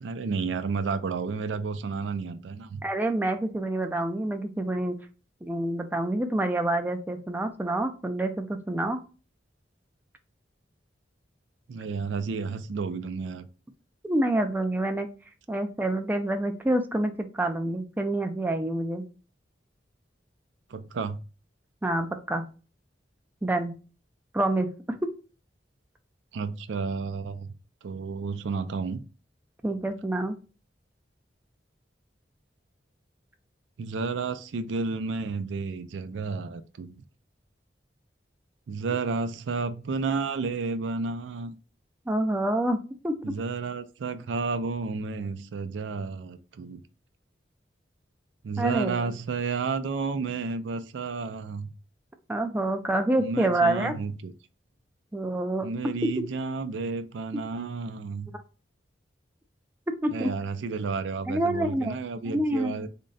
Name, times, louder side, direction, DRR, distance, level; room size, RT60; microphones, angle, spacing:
voice 1, 0.0-2.8 11.7-13.5 20.7-21.2 26.3-27.5 27.8-29.0 33.8-37.0 38.7-41.5 43.2-46.8 48.4-51.7 53.2-54.3 55.6-58.3 60.1-62.9, right 4 dB, 85° right, 0.4 m, -31 dB
voice 2, 2.8-4.9 5.4-9.0 14.0-15.1 15.5-19.0 21.8-22.4 23.4-23.7 24.3-24.7 25.0-25.1 29.6-30.4 42.1-42.8 43.0-43.2 48.6-49.1 52.3-54.0 55.1-55.7 60.0-60.3 61.3-62.0 62.3-62.9, right 1 dB, 10° right, 0.4 m, -27 dB
3.6 x 2.1 x 3.9 m
head